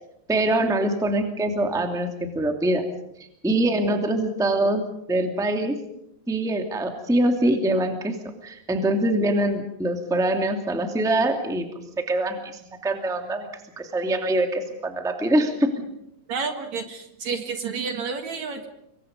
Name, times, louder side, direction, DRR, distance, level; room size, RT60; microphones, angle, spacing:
voice 1, 0.3-2.9 3.4-5.8 6.3-8.2 8.4-11.7 12.0-13.5 13.8-15.7, right 1 dB, ahead, 4 dB, 1.8 m, -24 dB
voice 2, 16.3-18.7, right 5 dB, 55° right, 6 dB, 2.7 m, -30 dB
26.5 x 24.0 x 5.3 m, 0.79 s
omnidirectional pair, 4.1 m